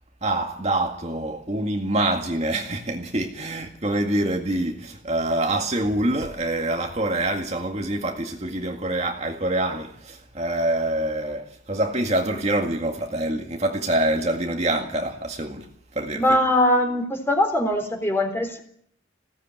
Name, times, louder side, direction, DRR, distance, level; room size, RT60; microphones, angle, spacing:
voice 1, 0.2-16.4, right 1 dB, 35° right, 2.0 m, -26 dB
voice 2, 16.1-18.6, left 1 dB, 10° left, 3.7 m, -21 dB
21.0 x 17.0 x 9.1 m
head